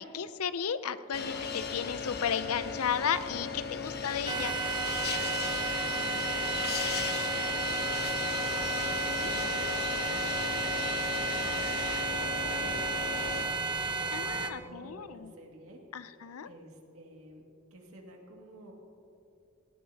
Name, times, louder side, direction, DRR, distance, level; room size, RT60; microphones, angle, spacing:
voice 1, 0.0-4.5 9.1-9.2 14.1-15.3 15.9-16.5, left 7 dB, 85° left, 14 dB, 0.6 m, -34 dB
sound 1, 1.1-13.5, left 5 dB, 50° left, 1.1 m, -36 dB
sound 2, 4.3-14.5, right 3 dB, 20° right, 0.8 m, -32 dB
voice 2, 5.8-10.7 11.3-13.4 13.9-15.8 16.4-17.4 17.7-18.7, equal, 70° right, 0 dB, 2.3 m, -51 dB
18.5 x 18.0 x 2.9 m, 2.6 s
head